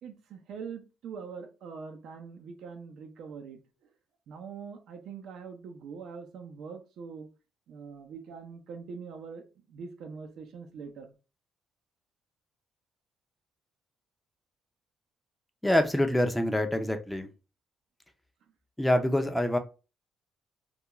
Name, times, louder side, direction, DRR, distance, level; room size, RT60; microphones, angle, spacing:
voice 1, 0.0-3.6 4.3-7.3 7.7-11.1, right 5 dB, 80° right, 5 dB, 0.5 m, -43 dB
voice 2, 15.6-17.3 18.8-19.6, left 1 dB, 5° left, 6 dB, 0.4 m, -25 dB
2.3 x 2.3 x 2.9 m, 0.31 s
cardioid pair, 90°, 0 cm